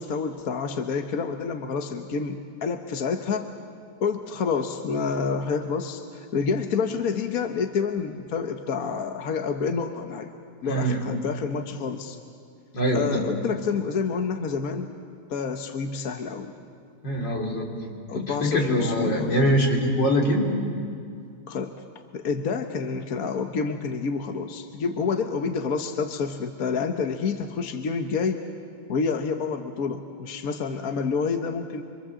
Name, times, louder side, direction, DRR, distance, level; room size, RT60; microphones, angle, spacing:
voice 1, 0.0-3.5 4.0-10.3 10.6-12.2 12.9-14.9 15.3-16.5 18.1-19.4 21.5-21.8 22.1-28.4 28.9-31.8, left 5 dB, 55° left, 5 dB, 1.4 m, -28 dB
voice 2, 10.6-11.0 12.7-13.2 17.0-17.7 18.1-20.5, equal, 75° left, -1 dB, 4.2 m, -23 dB
26.5 x 25.0 x 7.5 m, 2.2 s
omnidirectional pair, 2.0 m